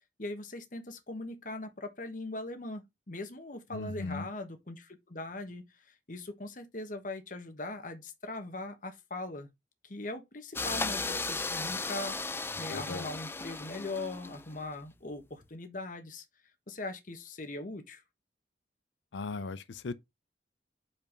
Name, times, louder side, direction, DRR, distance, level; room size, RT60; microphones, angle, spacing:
voice 1, 0.2-9.5 9.8-16.2 16.7-18.0, left 2 dB, 45° left, 1.3 m, -40 dB
voice 2, 3.7-4.3 12.7-13.1 19.1-19.9, left 3 dB, 80° left, 0.5 m, -37 dB
sound 1, 10.6-14.6, left 3 dB, 15° left, 0.4 m, -36 dB
5.6 x 4.5 x 5.1 m
head